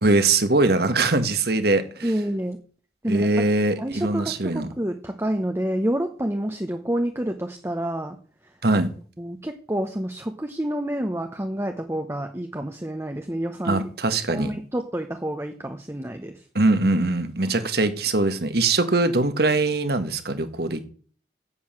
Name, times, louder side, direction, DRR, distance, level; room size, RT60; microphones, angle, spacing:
voice 1, 0.0-2.1 3.1-4.7 8.6-8.9 13.6-14.5 16.5-20.9, right 2 dB, 60° right, 1.6 m, -22 dB
voice 2, 2.0-2.6 3.0-3.4 3.8-8.2 9.2-13.8 14.3-16.3, right 1 dB, 15° right, 1.0 m, -28 dB
9.6 x 8.0 x 7.7 m
head